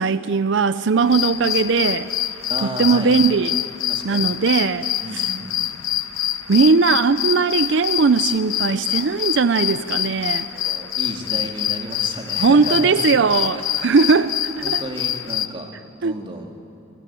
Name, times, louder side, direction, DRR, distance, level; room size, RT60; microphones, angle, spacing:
voice 1, 0.0-2.1 2.6-3.6 4.0-5.2 6.5-10.5 12.4-14.8 16.0-16.1, right 4 dB, 60° right, 0.5 m, -19 dB
sound 1, 1.0-15.5, left 12 dB, 90° left, 0.9 m, -26 dB
voice 2, 2.5-3.1 3.9-4.3 5.0-5.7 10.2-13.0 13.3-13.6 14.0-14.3 14.6-15.7 16.0-16.5, right 1 dB, 25° right, 2.2 m, -33 dB
21.5 x 17.5 x 9.7 m
head